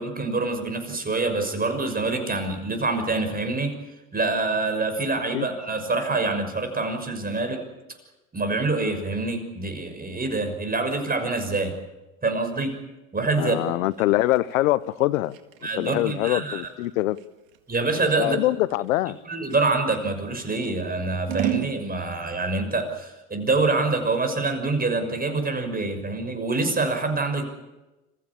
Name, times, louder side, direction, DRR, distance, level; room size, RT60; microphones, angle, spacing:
voice 1, 0.0-3.7 4.1-7.6 8.3-11.7 12.2-12.8 13.1-13.6 15.6-16.6 17.7-18.4 19.3-27.5, right 3 dB, 20° right, 6 dB, 6.2 m, -26 dB
voice 2, 13.4-15.3 15.8-17.2 18.2-19.2, left 16 dB, 85° left, 19 dB, 0.8 m, -23 dB
Scissors, 13.9-20.1 20.6-21.8, right 15 dB, 80° right, 2.0 m, -34 dB
27.5 x 15.0 x 8.5 m, 1.0 s
hypercardioid pair, 75°, 40 cm